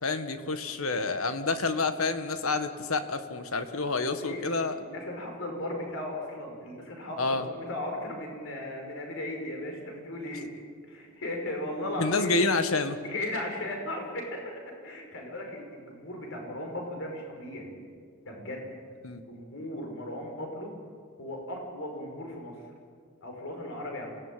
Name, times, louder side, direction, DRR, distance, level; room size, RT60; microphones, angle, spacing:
voice 1, 0.0-4.8 7.2-7.4 12.0-13.0 19.0-19.2, left 3 dB, 85° left, 9 dB, 1.7 m, -28 dB
voice 2, 4.1-10.5 10.9-12.4 13.0-14.4 14.8-17.7 18.3-20.7 21.2-22.5 23.2-24.1, left 1 dB, 65° left, 2 dB, 5.7 m, -37 dB
27.0 x 18.0 x 9.2 m, 2.1 s
head